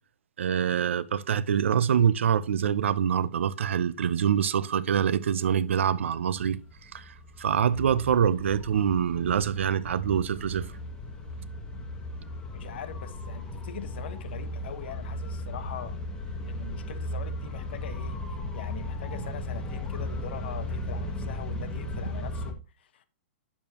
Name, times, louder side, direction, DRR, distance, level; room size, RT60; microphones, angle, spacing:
voice 1, 0.4-10.7, right 8 dB, 85° right, 0.5 m, -25 dB
sound 1, 5.5-22.5, left 1 dB, 10° left, 1.0 m, -36 dB
voice 2, 12.5-16.0 16.2-23.0, left 8 dB, 55° left, 1.1 m, -42 dB
8.6 x 7.0 x 2.9 m
hypercardioid pair, 165°, 7 cm